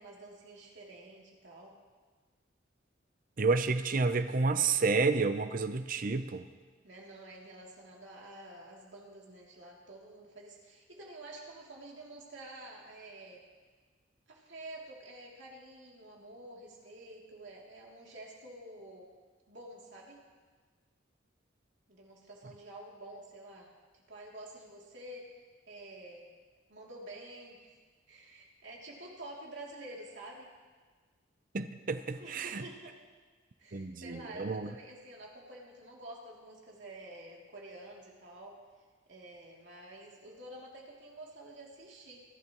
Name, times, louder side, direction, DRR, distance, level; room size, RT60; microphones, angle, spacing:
voice 1, 0.0-1.8 6.8-13.4 14.3-19.1 19.5-20.2 21.9-23.7 24.1-26.3 26.7-27.8 28.1-30.5 32.2-33.0 33.6-38.6 39.1-42.2, right 1 dB, 65° right, -3 dB, 2.8 m, -49 dB
voice 2, 3.4-6.5 31.5-32.6 33.7-34.7, right 4 dB, 45° right, 11 dB, 0.6 m, -30 dB
28.0 x 12.0 x 3.0 m, 1.4 s
head